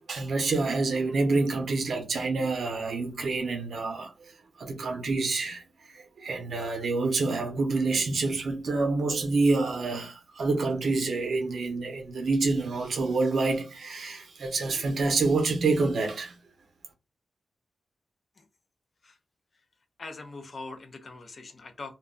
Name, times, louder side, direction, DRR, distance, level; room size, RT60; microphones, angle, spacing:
voice 1, 0.1-4.1 4.6-5.6 5.9-16.4, right 3 dB, 65° right, 0.6 m, -27 dB
voice 2, 20.0-21.9, left 3 dB, 40° left, 0.5 m, -42 dB
2.3 x 2.1 x 3.6 m
wide cardioid pair, 160°, 0 cm